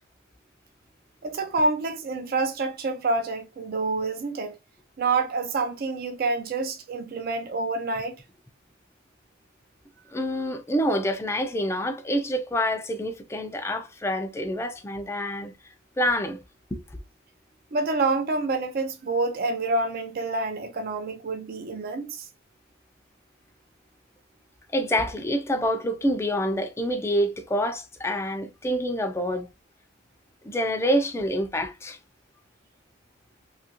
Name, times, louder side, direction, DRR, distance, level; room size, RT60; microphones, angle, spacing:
voice 1, 1.2-4.5 5.0-8.2 17.7-22.3, right 3 dB, 50° right, 0.4 m, -27 dB
voice 2, 10.1-15.5 16.0-16.4 16.7-16.8 24.7-29.4 30.4-32.0, equal, 15° left, 0.4 m, -27 dB
2.9 x 2.4 x 2.8 m
head